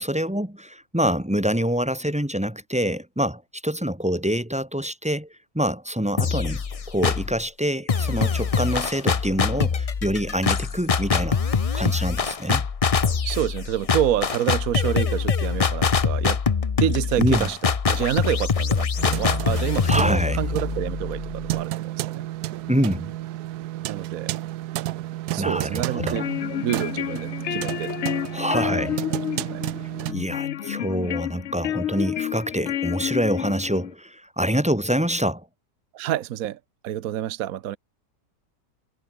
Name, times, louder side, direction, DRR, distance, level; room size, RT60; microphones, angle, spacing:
voice 1, 0.0-5.3 5.5-11.4 11.7-12.7 17.2-17.5 19.8-20.4 22.7-23.1 25.4-26.3 28.3-28.9 30.1-35.5, equal, 5° right, 1.8 m, -26 dB
sound 1, 6.2-7.4 7.9-21.6, left 6 dB, 40° left, 0.5 m, -24 dB
voice 2, 13.2-16.4 16.8-22.3 23.9-24.4 25.3-26.3 26.6-28.3 28.6-28.8 29.1-29.2 29.5-29.6 35.9-37.8, right 11 dB, 70° right, 1.2 m, -28 dB
sound 2, 19.0-30.1, right 15 dB, 85° right, 1.2 m, -31 dB
sound 3, 25.9-33.9, left 11 dB, 60° left, 0.9 m, -30 dB
omnidirectional pair, 1.6 m